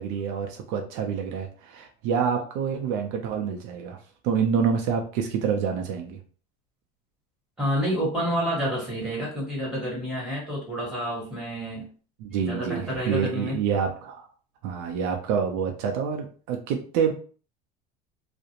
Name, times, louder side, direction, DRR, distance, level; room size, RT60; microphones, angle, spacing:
voice 1, 0.0-4.0 4.2-6.2 12.2-14.3 14.6-17.1, right 7 dB, 65° right, 3 dB, 0.5 m, -27 dB
voice 2, 7.6-11.8 12.4-13.6, equal, 5° right, -5 dB, 1.3 m, -29 dB
2.4 x 2.0 x 2.8 m, 0.40 s
supercardioid pair, 145°, 21 cm